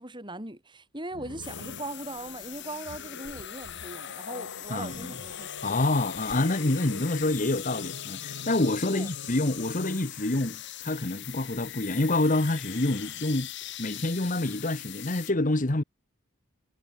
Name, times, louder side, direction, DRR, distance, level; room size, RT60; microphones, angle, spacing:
voice 1, 0.0-5.5 8.8-9.1, right 2 dB, 20° right, 6.9 m, -40 dB
Growling, 1.1-10.1 11.5-11.7 12.1-13.3, left 3 dB, 90° left, 1.7 m, -45 dB
sound 1, 1.4-15.3, left 12 dB, 55° left, 1.8 m, -41 dB
voice 2, 4.7-5.1 5.6-13.5 13.8-15.8, left 2 dB, 35° left, 1.2 m, -27 dB
head